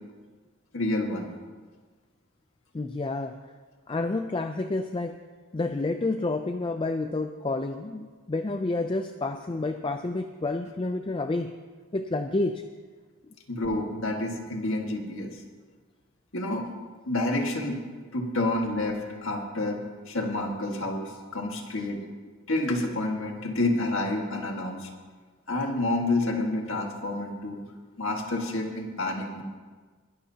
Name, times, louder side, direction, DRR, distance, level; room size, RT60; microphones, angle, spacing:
voice 1, 0.7-1.3 13.5-15.4 16.3-16.7 17.1-17.8 18.1-19.8 20.1-22.0 22.5-24.9 25.5-27.6 28.0-29.4, left 2 dB, 60° left, 2 dB, 1.7 m, -29 dB
voice 2, 2.7-3.4 3.9-5.2 5.5-11.5 11.9-12.6, left 2 dB, 25° left, 7 dB, 0.4 m, -29 dB
21.0 x 12.5 x 2.9 m, 1.5 s
head